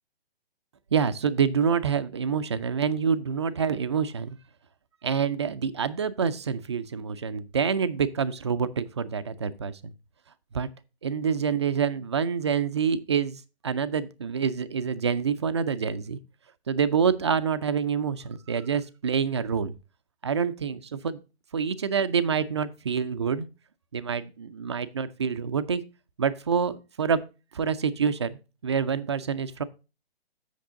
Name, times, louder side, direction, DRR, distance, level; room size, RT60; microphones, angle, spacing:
voice 1, 0.9-4.4 5.0-9.9 10.5-10.7 11.0-16.2 16.7-19.7 20.2-21.2 21.5-23.5 23.9-25.8 26.2-27.2 27.5-29.6, right 6 dB, 25° right, 12 dB, 0.4 m, -27 dB
7.9 x 6.5 x 3.7 m, 0.31 s
figure-of-eight pair, 135°, 32 cm